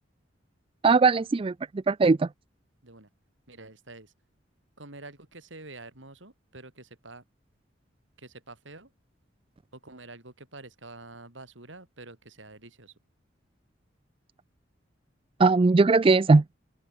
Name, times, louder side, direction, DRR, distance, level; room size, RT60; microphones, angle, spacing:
voice 1, 0.8-1.5 1.9-2.3 15.4-16.6, right 3 dB, 30° right, 0.4 m, -19 dB
voice 2, 3.5-4.1 4.8-7.2 8.2-8.9 9.7-12.9, right 2 dB, 85° right, 5.5 m, -47 dB
open air
head